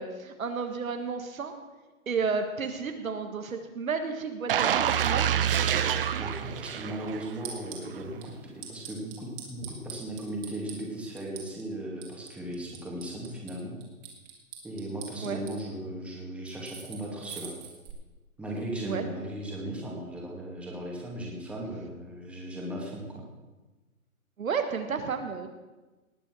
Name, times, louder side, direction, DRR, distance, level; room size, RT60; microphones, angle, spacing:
voice 1, 0.0-1.5 2.0-5.4 15.2-15.4 18.8-19.0 24.4-25.5, right 5 dB, 70° right, 6 dB, 1.8 m, -32 dB
sound 1, 4.5-7.4 7.8-8.0, right 9 dB, 40° right, 0.8 m, -27 dB
voice 2, 6.2-13.8 14.6-17.5 18.4-23.2, right 1 dB, 5° right, -3 dB, 2.5 m, -37 dB
sound 2, 7.3-7.9 8.2-8.3 8.6-10.8 11.2-11.6 12.0-13.5 13.8-15.5 16.5-17.9, right 8 dB, 25° right, 2.8 m, -43 dB
19.0 x 7.5 x 6.3 m, 1.2 s
hypercardioid pair, 140°, 43 cm